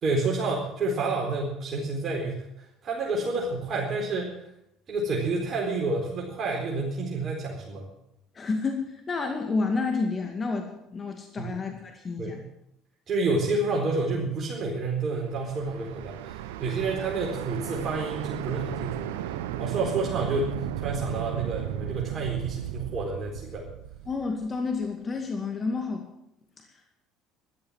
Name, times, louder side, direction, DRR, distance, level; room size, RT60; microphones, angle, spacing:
voice 1, 0.0-4.4 4.9-7.9 11.4-11.5 12.2-12.4 13.1-19.3 19.6-23.6, right 3 dB, 40° right, -2 dB, 4.2 m, -29 dB
voice 2, 8.4-12.4 24.1-26.1, left 4 dB, 30° left, 3 dB, 2.2 m, -30 dB
sound 1, 14.9-24.8, right 12 dB, 70° right, 0.7 m, -35 dB
13.0 x 12.5 x 7.6 m, 0.82 s
figure-of-eight pair, 60°, 0 cm